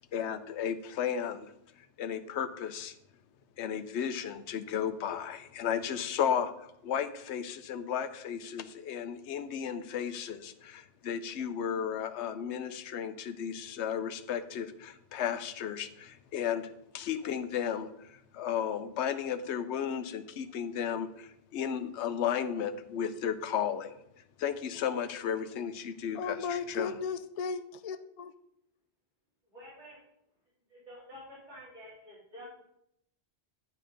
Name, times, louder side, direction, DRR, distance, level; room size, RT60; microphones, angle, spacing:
voice 1, 0.1-1.5 2.0-2.9 3.6-6.5 6.8-23.9 24.4-27.0, left 8 dB, 75° left, 11 dB, 1.0 m, -34 dB
voice 2, 26.1-28.3, left 5 dB, 55° left, 10 dB, 0.4 m, -36 dB
voice 3, 29.5-30.0 30.7-32.4, equal, 75° right, -9 dB, 4.0 m, -49 dB
9.8 x 5.4 x 5.1 m, 0.77 s
omnidirectional pair, 1.2 m